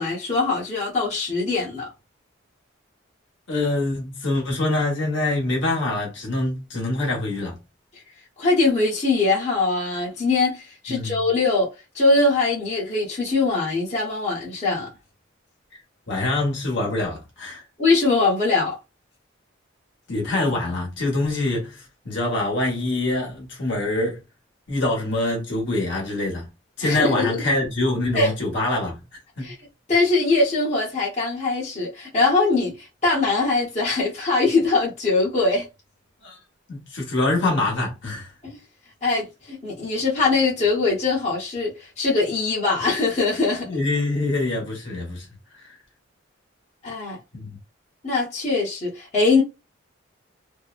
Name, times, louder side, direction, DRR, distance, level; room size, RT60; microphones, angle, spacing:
voice 1, 0.0-1.9 8.4-11.7 11.9-14.9 17.8-18.8 26.8-27.4 28.1-28.3 29.4-29.5 29.9-35.7 38.4-38.6 39.0-43.7 46.8-47.2 48.0-49.4, left 3 dB, 35° left, 0.9 m, -22 dB
voice 2, 3.5-7.5 10.9-11.3 16.1-17.6 20.1-24.2 24.7-26.5 26.8-29.0 29.4-29.5 36.2-36.4 36.7-38.3 43.7-45.3 45.5-45.7 47.3-47.6, left 2 dB, 65° left, 1.1 m, -25 dB
2.6 x 2.1 x 2.4 m
head